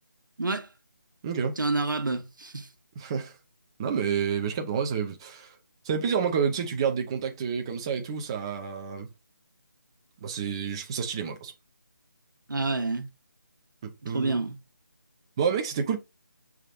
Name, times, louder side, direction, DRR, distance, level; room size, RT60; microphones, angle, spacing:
voice 1, 0.4-0.7 1.6-2.7 12.5-13.1 14.0-14.6, right 3 dB, 80° right, 1.1 m, -28 dB
voice 2, 1.2-1.6 3.0-3.4 3.8-5.6 5.8-9.1 10.2-11.5 13.8-14.4 15.4-16.0, right 6 dB, 15° right, 0.4 m, -29 dB
6.3 x 3.5 x 2.4 m
figure-of-eight pair, 160°, 10 cm